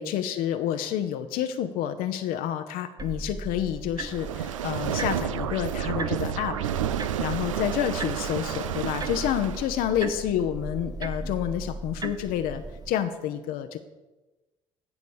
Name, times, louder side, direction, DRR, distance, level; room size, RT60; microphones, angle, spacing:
voice 1, 0.0-6.6 7.2-13.8, left 10 dB, 60° left, 7 dB, 0.8 m, -29 dB
sound 1, 3.0-12.9, right 2 dB, 25° right, 1.0 m, -37 dB
sound 2, 4.0-9.8, right 10 dB, 85° right, 0.4 m, -31 dB
16.0 x 5.4 x 6.4 m, 1.1 s
figure-of-eight pair, 50°, 16 cm